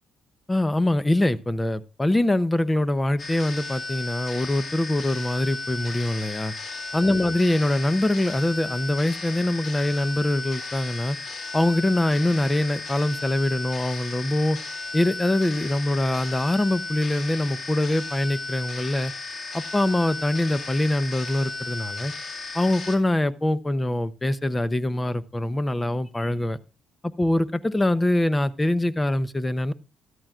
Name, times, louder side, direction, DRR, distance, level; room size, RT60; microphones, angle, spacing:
voice 1, 0.5-6.5 6.9-11.2 11.5-14.6 14.9-19.1 19.5-22.1 22.5-26.6 27.0-29.7, left 1 dB, 15° left, 14 dB, 0.8 m, -24 dB
sound 1, 3.2-23.0, left 3 dB, 50° left, 2.5 m, -35 dB
13.5 x 13.0 x 2.4 m, 0.33 s
cardioid pair, 90°, 0 cm